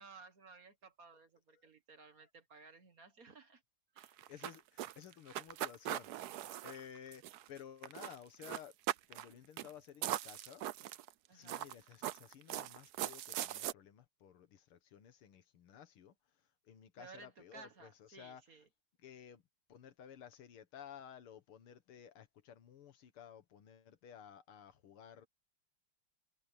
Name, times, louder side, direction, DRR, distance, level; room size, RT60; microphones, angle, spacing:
voice 1, 0.0-3.6 3.9-4.2 11.3-11.7 17.0-18.7, right 4 dB, 45° right, 1.7 m, -57 dB
sound 1, 4.0-7.6 7.8-8.2 8.4-9.3 9.6-9.7 10.0-11.1 11.5-13.7, right 13 dB, 75° right, 0.9 m, -40 dB
voice 2, 4.3-8.8 9.1-10.7 11.3-18.6 19.0-19.4 19.7-25.3, left 9 dB, 80° left, 2.3 m, -55 dB
omnidirectional pair, 2.4 m